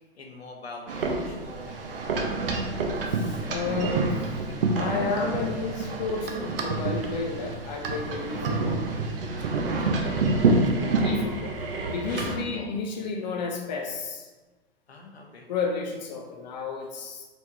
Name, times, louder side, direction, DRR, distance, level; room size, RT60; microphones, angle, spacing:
voice 1, 0.1-1.7 9.8-10.2 12.1-12.7 14.9-15.5, left 3 dB, 75° left, 0 dB, 1.0 m, -44 dB
sound 1, 0.9-12.4, right 3 dB, 60° right, 0.7 m, -27 dB
voice 2, 3.1-4.3 4.6-8.8 11.0-11.6 11.9-14.3 15.5-17.3, left 4 dB, 45° left, 2 dB, 0.5 m, -32 dB
4.2 x 3.4 x 2.8 m, 1.2 s
figure-of-eight pair, 105°, 32 cm